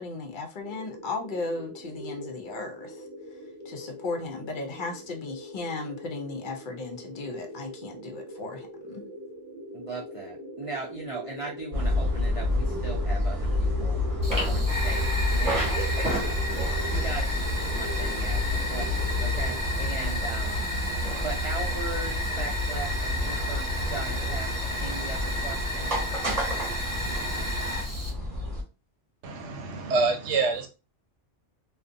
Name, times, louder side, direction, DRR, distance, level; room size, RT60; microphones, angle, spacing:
voice 1, 0.0-3.0 3.7-9.1, left 3 dB, 60° left, 0.5 m, -36 dB
sound 1, 0.6-19.6, equal, 30° left, 0.8 m, -42 dB
voice 2, 9.7-14.0 14.4-15.5 15.8-20.6 21.2-24.5 24.8-26.0, right 3 dB, 55° right, 0.3 m, -38 dB
sound 2, 11.7-28.6, left 1 dB, 35° right, 0.9 m, -29 dB
Fire, 14.2-28.1, left 1 dB, 5° right, 1.0 m, -33 dB
voice 3, 29.2-30.7, right 3 dB, 90° right, 0.9 m, -26 dB
2.6 x 2.1 x 2.5 m
omnidirectional pair, 1.2 m